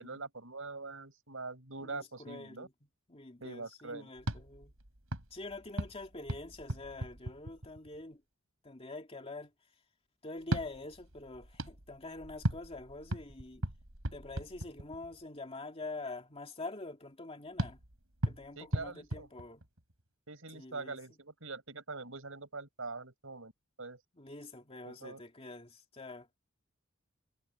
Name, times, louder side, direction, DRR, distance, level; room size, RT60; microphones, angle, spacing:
voice 1, 0.0-2.7 3.4-4.1 18.6-19.3 20.3-23.5 23.8-24.0 24.8-25.2, right 3 dB, 70° right, 6.4 m, -43 dB
voice 2, 1.8-2.7 3.1-4.7 5.3-8.2 8.6-9.5 10.2-13.6 14.1-17.8 18.2-19.6 20.5-21.0 24.1-26.3, left 2 dB, 30° left, 2.4 m, -45 dB
sound 1, 4.2-8.0 10.4-15.2 17.6-20.0, right 1 dB, 90° right, 4.2 m, -39 dB
head